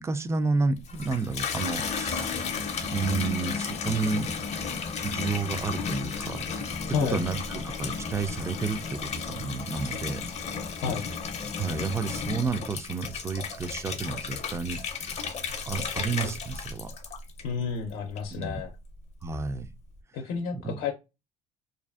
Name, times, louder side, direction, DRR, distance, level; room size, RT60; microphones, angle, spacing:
voice 1, 0.0-2.6 2.9-4.3 5.0-6.4 7.1-10.2 11.6-15.2 15.7-16.9 18.3-18.6 19.2-19.7 20.5-20.8, right 4 dB, 15° right, 0.3 m, -31 dB
Water tap faucet / Bathtub (filling or washing), 0.8-17.7 18.2-18.7, left 5 dB, 40° left, 0.5 m, -33 dB
voice 2, 17.4-18.7 20.1-20.9, left 6 dB, 90° left, 0.5 m, -30 dB
2.5 x 2.4 x 2.3 m
cardioid pair, 110°, 17 cm